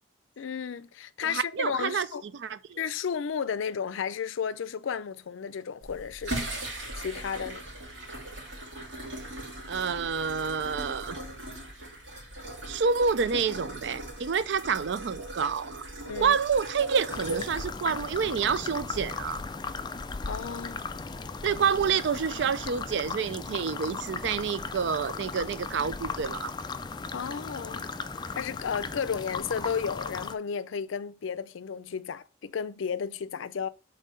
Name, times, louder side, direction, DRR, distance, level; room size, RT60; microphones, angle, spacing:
voice 1, 0.4-2.2 2.8-6.3 7.0-7.6 16.1-16.4 20.3-20.8 27.1-27.9 28.3-33.7, left 6 dB, 90° left, 0.4 m, -33 dB
voice 2, 1.3-2.1 2.3-2.8 9.2-9.3 9.7-11.2 12.7-15.8 16.2-19.4 21.4-26.5, right 6 dB, 65° right, 0.4 m, -28 dB
sound 1, 5.8-18.2, right 1 dB, 85° right, 2.3 m, -39 dB
sound 2, 17.1-30.3, left 4 dB, 20° left, 0.3 m, -37 dB
5.5 x 3.8 x 5.2 m
head